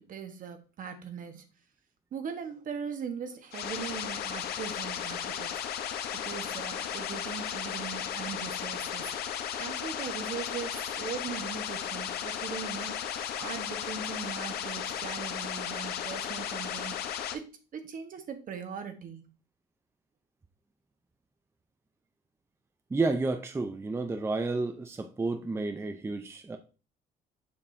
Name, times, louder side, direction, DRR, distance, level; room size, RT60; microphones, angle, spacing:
voice 1, 0.1-1.4 2.1-5.8 6.2-9.3 9.6-19.3, right 7 dB, 50° right, 7 dB, 1.2 m, -40 dB
sound 1, 3.5-17.3, left 9 dB, 70° left, 0.9 m, -35 dB
voice 2, 22.9-26.6, right 3 dB, 15° right, 7 dB, 0.5 m, -31 dB
7.0 x 5.4 x 2.6 m, 0.34 s
cardioid pair, 110°, 17 cm